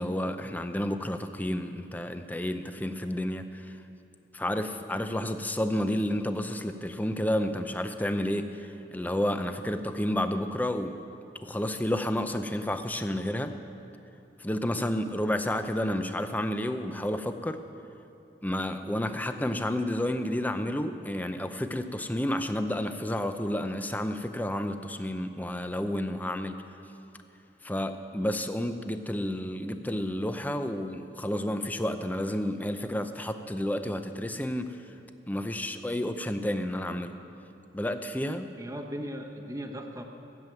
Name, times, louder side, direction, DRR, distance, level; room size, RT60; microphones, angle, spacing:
voice 1, 0.0-3.8 4.3-11.0 11.4-13.6 14.4-17.6 18.4-26.6 27.6-34.8 35.3-37.1 37.7-38.5, left 1 dB, 10° left, 8 dB, 0.6 m, -30 dB
voice 2, 38.6-40.0, equal, 20° right, 3 dB, 1.1 m, -37 dB
15.5 x 7.5 x 9.0 m, 2.8 s
head